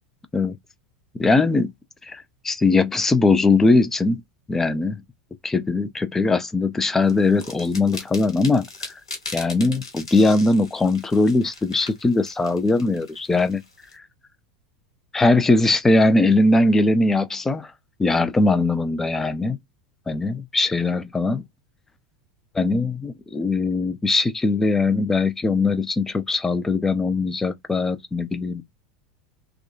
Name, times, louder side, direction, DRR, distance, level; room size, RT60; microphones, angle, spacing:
voice 1, 1.2-1.7 2.0-4.2 4.5-5.0 5.4-8.9 9.3-13.6 13.9-14.0 15.1-17.7 18.0-19.6 20.1-21.4 22.6-28.6, left 3 dB, 10° left, 0.5 m, -20 dB
sound 1, 7.1-13.9, left 3 dB, 75° left, 1.4 m, -39 dB
3.6 x 2.2 x 2.4 m
figure-of-eight pair, 80°, 3 cm